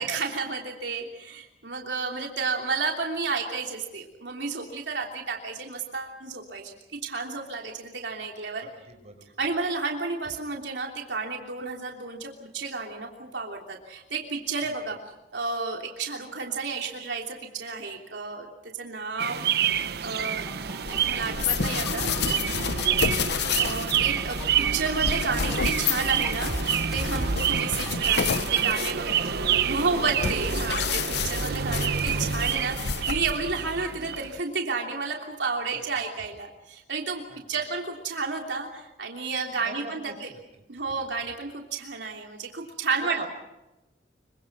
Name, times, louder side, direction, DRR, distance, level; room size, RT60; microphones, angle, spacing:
voice 1, 0.0-8.7 9.4-15.0 15.3-18.5 18.8-19.7 20.0-20.4 20.9-22.1 23.6-37.2 37.5-40.3 40.7-43.3, right 4 dB, 85° right, 1 dB, 3.2 m, -31 dB
voice 2, 8.6-9.3 14.6-14.7 28.9-29.9 35.7-36.0 37.3-37.4 39.6-40.4 43.1-43.3, right 2 dB, 40° right, 4 dB, 5.0 m, -43 dB
sound 1, 19.2-34.4, right 8 dB, 65° right, 0.9 m, -28 dB
sound 2, 20.5-29.7, equal, ahead, 3.8 m, -41 dB
sound 3, 20.9-33.6, left 6 dB, 70° left, 0.8 m, -31 dB
26.0 x 24.5 x 6.1 m, 0.97 s
head